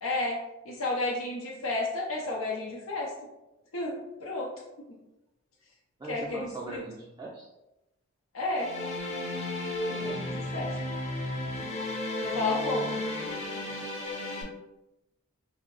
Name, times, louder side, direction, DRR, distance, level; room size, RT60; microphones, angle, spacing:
voice 1, 0.0-3.1 3.7-4.5 4.8-4.9 6.0-6.8 8.3-8.7 9.9-10.8 12.2-13.0, left 2 dB, 85° left, -3 dB, 0.6 m, -32 dB
voice 2, 6.0-7.5 12.2-13.8, right 2 dB, 20° right, -3 dB, 0.3 m, -42 dB
sound 1, 8.6-14.4, left 1 dB, 35° left, 0.6 m, -33 dB
2.6 x 2.0 x 3.8 m, 0.94 s
head